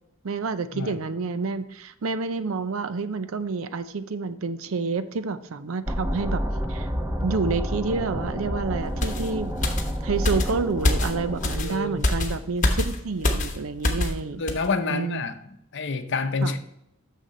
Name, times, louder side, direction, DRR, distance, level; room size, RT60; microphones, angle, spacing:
voice 1, 0.2-6.4 6.7-6.9 7.2-9.7 10.0-14.5 14.9-15.3 16.4-16.6, right 4 dB, 75° right, 12 dB, 0.5 m, -29 dB
sound 1, 5.9-11.6, equal, 10° right, 0.8 m, -29 dB
sound 2, 9.0-14.2 14.5-14.7, left 1 dB, 35° left, 1.0 m, -26 dB
voice 2, 11.6-12.0 14.4-15.4 15.7-16.6, left 3 dB, 55° left, 9 dB, 0.7 m, -27 dB
6.7 x 6.4 x 4.3 m, 0.80 s
head